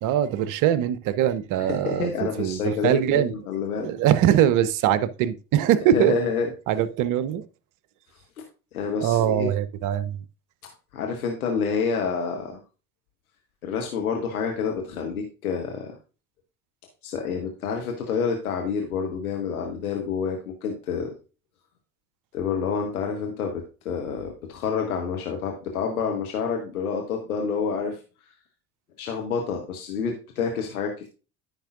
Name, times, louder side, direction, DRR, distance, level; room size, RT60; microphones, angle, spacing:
voice 1, 0.0-3.3 3.8-6.2 6.7-7.5 9.0-10.2, right 11 dB, 45° right, 0.7 m, -22 dB
voice 2, 1.6-3.9 5.8-6.5 8.7-9.5 10.9-12.6 13.6-16.0 17.0-21.1 22.3-28.0 28.3-28.4 29.0-31.1, left 6 dB, 80° left, 1.1 m, -28 dB
13.5 x 5.3 x 2.5 m
figure-of-eight pair, 55°, 43 cm